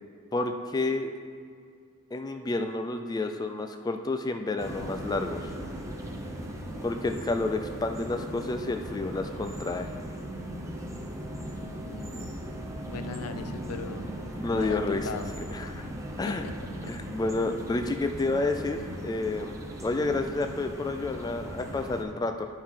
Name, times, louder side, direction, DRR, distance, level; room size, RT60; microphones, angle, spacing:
voice 1, 0.3-1.1 2.1-5.5 6.8-9.9 14.4-15.1 15.5-15.9 16.2-16.5 16.8-22.5, left 2 dB, 15° left, 6 dB, 0.3 m, -30 dB
sound 1, 4.6-22.0, right 1 dB, 15° right, 0.8 m, -38 dB
voice 2, 11.8-12.3 12.9-14.1 14.5-15.3 16.3-16.5, left 5 dB, 80° left, 8 dB, 0.5 m, -38 dB
11.5 x 4.5 x 3.7 m, 2.2 s
head